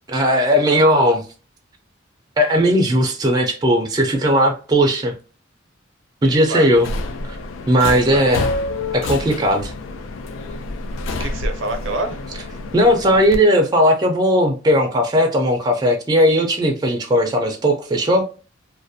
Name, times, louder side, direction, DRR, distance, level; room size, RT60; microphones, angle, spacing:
voice 1, 0.1-1.2 2.4-5.1 6.2-6.9 7.2-7.4 7.7-8.5 8.9-9.7 12.7-18.2, equal, 20° right, 2 dB, 0.4 m, -17 dB
voice 2, 6.2-6.8 7.9-8.2 11.0-12.2, right 2 dB, 75° right, 6 dB, 0.5 m, -28 dB
Subway metro underground, 6.8-13.4, left 2 dB, 85° left, 0.4 m, -28 dB
2.4 x 2.0 x 2.5 m, 0.36 s
head